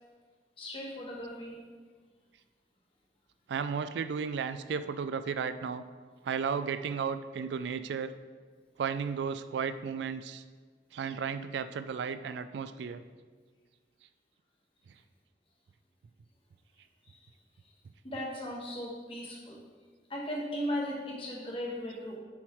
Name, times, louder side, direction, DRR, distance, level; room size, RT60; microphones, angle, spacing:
voice 1, 0.6-1.6 17.0-17.1 18.0-19.6 20.1-22.2, equal, 30° left, -3 dB, 1.3 m, -37 dB
voice 2, 3.5-5.8 6.2-8.1 8.8-10.4 10.9-13.0, right 6 dB, 75° right, 11 dB, 0.3 m, -34 dB
7.2 x 4.6 x 4.5 m, 1.5 s
head